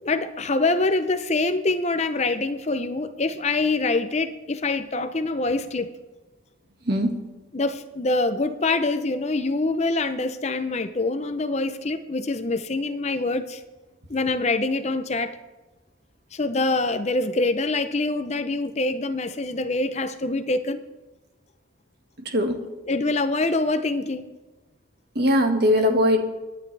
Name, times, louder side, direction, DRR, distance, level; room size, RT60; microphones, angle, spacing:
voice 1, 0.0-6.0 7.5-13.6 14.1-15.4 16.3-20.8 22.9-24.3, left 2 dB, 35° left, 10 dB, 0.6 m, -25 dB
voice 2, 6.9-7.2 22.3-22.6 25.2-26.2, equal, 55° right, 4 dB, 1.9 m, -20 dB
24.5 x 10.5 x 3.4 m, 1.2 s
head